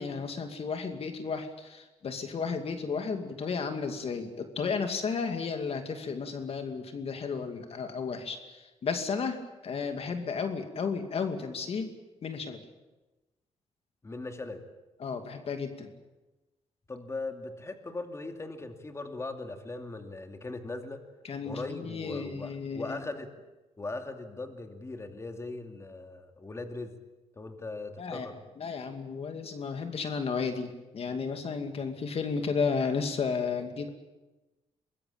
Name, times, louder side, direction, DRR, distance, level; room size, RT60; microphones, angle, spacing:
voice 1, 0.0-11.9 12.2-12.6 15.0-15.9 21.2-23.0 28.0-28.3 28.6-33.9, left 5 dB, 55° left, 6 dB, 2.5 m, -33 dB
voice 2, 14.0-14.6 16.9-21.0 21.4-23.3 23.8-26.9 27.4-28.4, left 2 dB, 25° left, 6 dB, 2.6 m, -39 dB
24.0 x 21.0 x 8.8 m, 1.1 s
cardioid pair, 105°, 12 cm